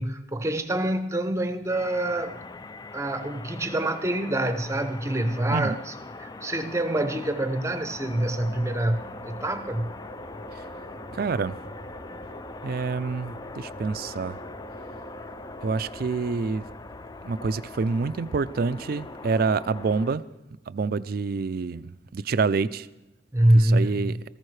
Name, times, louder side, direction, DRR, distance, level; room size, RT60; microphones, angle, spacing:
voice 1, 0.0-2.4 2.9-5.9 6.2-9.9 23.3-24.1, right 1 dB, 15° right, 9 dB, 0.7 m, -25 dB
sound 1, 1.7-20.2, left 3 dB, 20° left, 0.4 m, -41 dB
sound 2, 7.9-16.9, right 5 dB, 90° left, 3.8 m, -47 dB
voice 2, 11.1-11.6 12.6-14.4 15.6-16.6 17.2-20.2 20.7-22.9 23.5-24.2, right 4 dB, 55° right, 15 dB, 0.4 m, -27 dB
19.0 x 14.5 x 3.2 m, 0.98 s
head